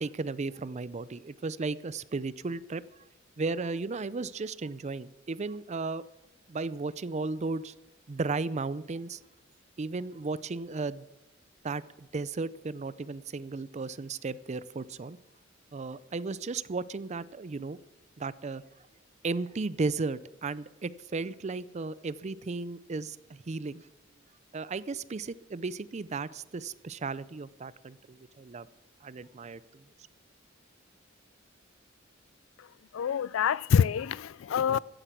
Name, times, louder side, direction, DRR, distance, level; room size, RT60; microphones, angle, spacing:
voice 1, 0.0-2.8 3.4-6.0 6.5-7.7 8.1-9.2 9.8-11.1 11.6-15.2 15.7-17.8 18.2-18.6 19.2-23.8 24.5-28.7 29.0-29.8, right 3 dB, 35° right, 0.5 m, -35 dB
voice 2, 32.9-34.8, left 7 dB, 80° left, 0.4 m, -26 dB
14.5 x 10.0 x 6.1 m
head